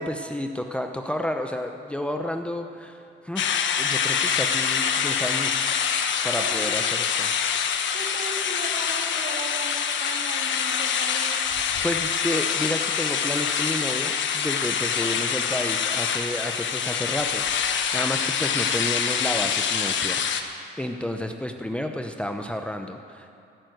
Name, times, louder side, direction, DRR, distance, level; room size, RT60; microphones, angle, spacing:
voice 1, 0.0-5.6 6.2-7.3 11.8-23.3, left 1 dB, 5° left, 5 dB, 0.8 m, -31 dB
sound 1, 3.4-20.4, left 7 dB, 70° left, 1.2 m, -25 dB
voice 2, 6.4-6.7 7.9-11.5 15.0-15.2, right 2 dB, 50° right, 1 dB, 2.6 m, -38 dB
16.0 x 9.2 x 7.9 m, 2.6 s
cardioid pair, 90°, 20 cm